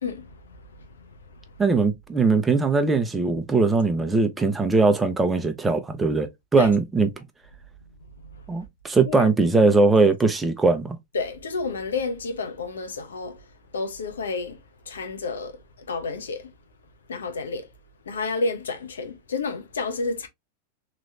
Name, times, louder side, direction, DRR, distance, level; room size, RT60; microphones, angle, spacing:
voice 1, 1.6-7.1 8.5-11.0, right 3 dB, 15° right, 0.7 m, -20 dB
voice 2, 11.1-13.4 13.7-14.6 14.9-15.6 15.9-16.5 17.1-17.7 18.1-20.3, left 4 dB, 90° left, 0.9 m, -30 dB
3.1 x 3.0 x 2.5 m
hypercardioid pair, 110°, 0 cm